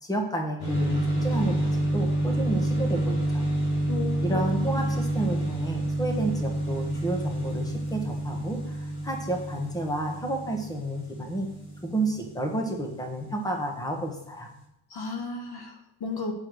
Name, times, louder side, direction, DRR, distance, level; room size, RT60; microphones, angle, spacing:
voice 1, 0.0-3.5 4.2-11.5 11.8-14.5, right 1 dB, 5° left, 2 dB, 1.5 m, -31 dB
sound 1, 0.6-13.1, right 1 dB, 70° left, 3.1 m, -28 dB
voice 2, 3.9-4.9 14.9-16.3, left 4 dB, 50° left, 3 dB, 1.3 m, -35 dB
8.7 x 4.7 x 4.8 m, 0.83 s
cardioid pair, 90°, 50 cm